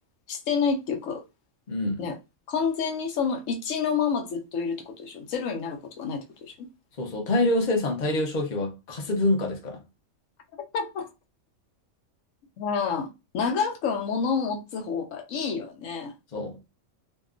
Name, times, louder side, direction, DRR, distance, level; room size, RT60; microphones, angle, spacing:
voice 1, 0.3-1.2 2.0-2.2 2.5-6.7 10.7-11.1 12.6-16.1, left 6 dB, 75° left, 1.0 m, -28 dB
voice 2, 1.7-2.0 7.0-9.8 16.3-16.6, left 2 dB, 40° left, 0.7 m, -26 dB
2.8 x 2.4 x 2.4 m
omnidirectional pair, 1.4 m